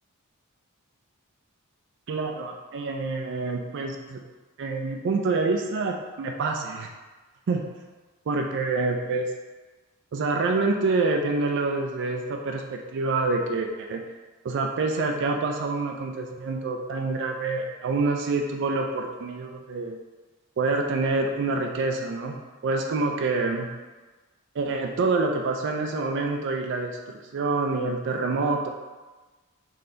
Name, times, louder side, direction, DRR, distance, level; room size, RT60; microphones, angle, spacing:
voice 1, 2.1-4.2 4.6-6.9 7.5-7.7 8.3-9.3 10.1-14.0 14.4-20.0 20.6-22.3 22.6-23.7 24.6-28.7, right 3 dB, 55° right, 2 dB, 0.4 m, -27 dB
3.9 x 2.8 x 3.7 m, 1.3 s
head